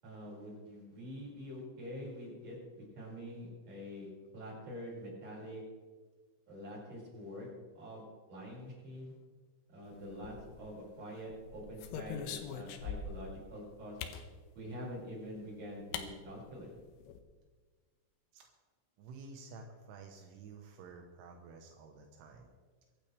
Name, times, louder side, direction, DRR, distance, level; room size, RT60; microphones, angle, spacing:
voice 1, 0.0-5.6 6.5-7.5 7.7-8.0 8.3-9.1 9.7-14.0 14.5-16.7, equal, 35° right, -5 dB, 6.6 m, -46 dB
sound 1, 10.1-10.8 11.3-13.3 14.0-14.3 15.4-15.5 15.9-16.1 16.4-16.5 16.8-17.2, left 7 dB, 90° left, 3.5 m, -42 dB
voice 2, 19.0-22.5, right 4 dB, 85° right, 2 dB, 3.6 m, -51 dB
23.5 x 12.0 x 3.4 m, 1.4 s
omnidirectional pair, 5.4 m